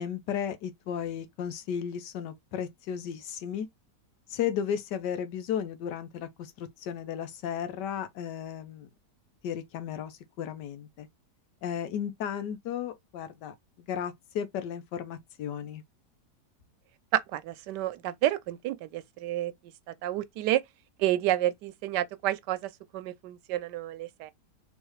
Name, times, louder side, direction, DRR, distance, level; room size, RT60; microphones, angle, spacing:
voice 1, 0.0-3.7 4.3-8.9 9.4-11.1 11.6-13.5 13.9-15.8, left 8 dB, 90° left, 1.4 m, -34 dB
voice 2, 17.1-19.5 19.9-20.6 21.0-24.3, right 14 dB, 85° right, 1.2 m, -30 dB
3.5 x 3.1 x 3.1 m
omnidirectional pair, 1.8 m